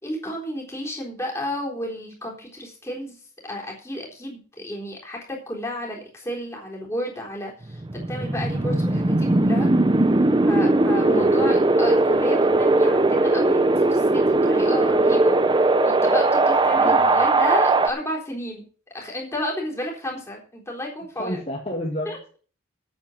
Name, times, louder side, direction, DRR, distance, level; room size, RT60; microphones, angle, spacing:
voice 1, 0.0-3.2 3.4-9.7 10.5-15.4 15.8-18.7 18.9-21.4 22.1-22.4, left 1 dB, 15° left, -1 dB, 3.7 m, -32 dB
Wind, 7.7-17.9, right 2 dB, 20° right, 0.6 m, -19 dB
voice 2, 11.0-11.5 16.8-17.0 21.2-22.2, left 1 dB, 30° left, -1 dB, 2.0 m, -30 dB
9.0 x 8.0 x 7.2 m, 0.40 s
head